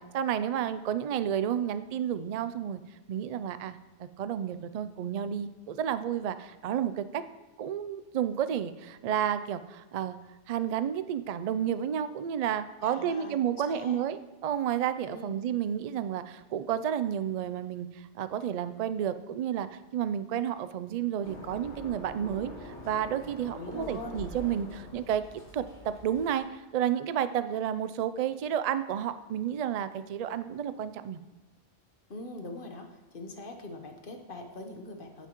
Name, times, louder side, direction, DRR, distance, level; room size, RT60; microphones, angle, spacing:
voice 1, 0.0-2.8 3.1-7.2 7.6-10.2 10.5-25.2 25.5-31.2, right 9 dB, 65° right, 12 dB, 0.3 m, -31 dB
voice 2, 12.8-14.0 15.1-15.4 23.5-24.2 32.1-35.3, left 2 dB, 50° left, 4 dB, 1.2 m, -42 dB
sound 1, 21.2-26.4, equal, 90° left, 2.8 m, -45 dB
15.5 x 5.8 x 3.0 m, 1.2 s
omnidirectional pair, 1.2 m